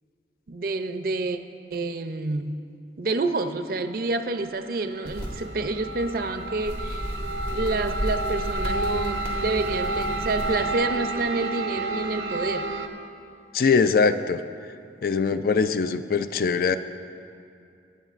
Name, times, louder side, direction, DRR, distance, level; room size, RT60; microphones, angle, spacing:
voice 1, 0.5-1.4 1.7-2.6 3.0-7.1 7.5-12.7, right 3 dB, 55° right, 9 dB, 0.5 m, -28 dB
sound 1, 4.3-12.9, right 2 dB, 85° right, 0.8 m, -31 dB
sound 2, 5.1-10.7, equal, 70° left, 2.4 m, -33 dB
voice 2, 13.5-14.4 15.0-16.8, left 5 dB, 55° left, 11 dB, 0.3 m, -22 dB
25.0 x 8.7 x 2.5 m, 2.5 s
head